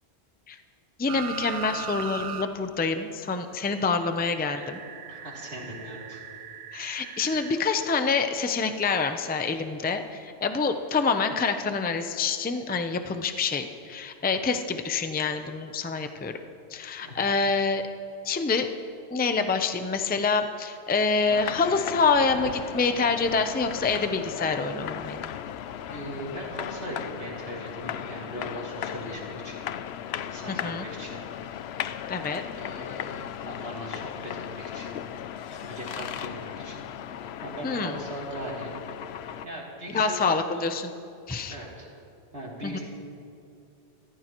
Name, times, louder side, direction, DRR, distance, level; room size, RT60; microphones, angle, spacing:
voice 1, 1.0-4.8 6.7-16.3 16.7-17.8 18.2-18.7 19.1-25.3 30.5-30.9 32.1-32.4 37.6-38.0 39.9-40.9 41.3-41.5 42.6-42.8, left 4 dB, 10° left, 7 dB, 0.4 m, -26 dB
sound 1, 1.1-2.5 2.8-2.9 4.4-7.6 9.3-9.4, right 7 dB, 85° right, 1.1 m, -38 dB
voice 2, 5.1-6.2 17.0-17.2 25.9-29.7 30.2-31.3 32.5-35.0 35.6-36.9 37.4-38.7 39.4-40.6 41.5-41.9 42.3-42.8, right 1 dB, 60° right, -4 dB, 3.2 m, -39 dB
sound 2, 21.3-39.5, left 10 dB, 70° left, 0.8 m, -37 dB
26.0 x 14.0 x 3.0 m, 2.6 s
omnidirectional pair, 1.2 m